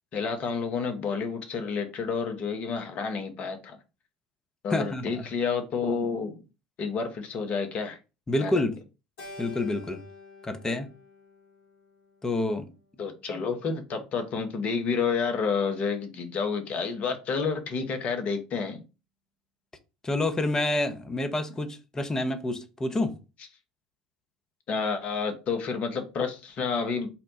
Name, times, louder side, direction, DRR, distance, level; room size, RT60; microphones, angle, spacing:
voice 1, 0.1-3.8 4.6-6.4 6.8-8.0 8.4-8.6 13.0-18.8 24.7-27.1, left 5 dB, 45° left, 0.9 m, -30 dB
voice 2, 4.7-5.2 8.3-8.8 9.4-10.0 10.4-10.9 12.2-12.7 20.0-23.2, left 2 dB, 15° left, 0.7 m, -28 dB
Keyboard (musical), 9.2-13.6, left 3 dB, 65° left, 2.3 m, -49 dB
4.3 x 2.1 x 4.0 m
figure-of-eight pair, 70°, 3 cm